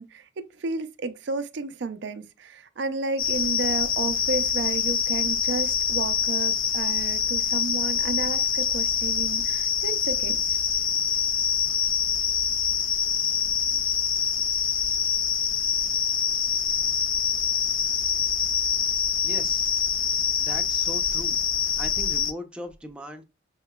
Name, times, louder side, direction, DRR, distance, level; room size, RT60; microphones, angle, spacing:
voice 1, 0.0-10.6, right 3 dB, 60° right, 0.4 m, -32 dB
sound 1, 3.2-22.3, left 7 dB, 90° left, 0.7 m, -25 dB
voice 2, 19.2-19.7 20.4-23.2, equal, 5° right, 0.5 m, -39 dB
6.3 x 2.8 x 2.2 m
head